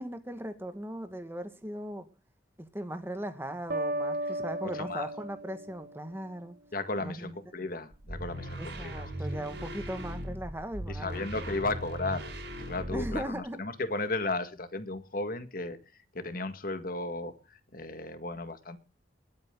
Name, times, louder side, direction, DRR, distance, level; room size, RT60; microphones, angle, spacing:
voice 1, 0.0-2.1 2.6-6.6 7.0-7.4 8.6-11.3 12.9-13.6, right 1 dB, 15° right, 1.8 m, -38 dB
sound 1, 3.7-6.5, right 1 dB, 55° right, 1.1 m, -35 dB
voice 2, 4.6-5.1 6.7-9.4 10.9-12.3 12.7-15.8 16.1-18.8, left 2 dB, 50° left, 1.8 m, -35 dB
sound 2, 7.9-13.4, equal, 70° right, 5.5 m, -38 dB
22.0 x 9.1 x 3.9 m
head